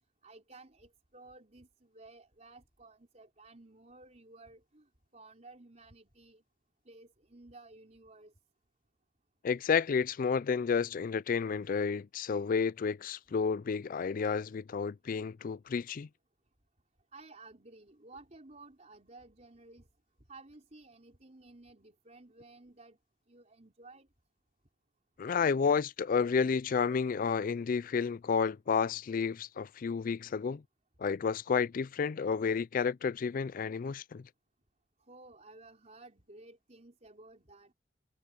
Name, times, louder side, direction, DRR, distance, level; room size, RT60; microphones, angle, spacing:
voice 1, 0.2-6.4 6.8-8.3 17.1-19.9 20.3-23.0 23.3-24.1 35.0-37.7, right 2 dB, 40° right, 4.6 m, -55 dB
voice 2, 9.4-16.1 25.2-30.6 31.0-34.3, left 6 dB, 50° left, 0.4 m, -31 dB
head